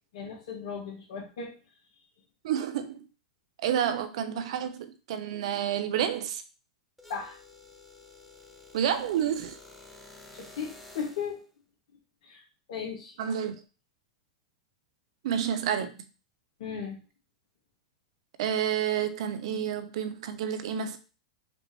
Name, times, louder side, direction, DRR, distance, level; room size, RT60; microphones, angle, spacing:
voice 1, 0.1-1.5 7.1-7.4 10.3-11.4 12.2-12.4 12.7-13.2 16.6-17.0, left 6 dB, 70° left, 1.7 m, -36 dB
voice 2, 2.4-3.0 3.6-6.4 8.7-9.6 13.2-13.6 15.2-15.9 18.4-21.0, right 9 dB, 65° right, 0.6 m, -29 dB
sound 1, 7.0-11.4, left 2 dB, 5° left, 1.0 m, -51 dB
5.2 x 3.1 x 3.0 m
hypercardioid pair, 115°, 3 cm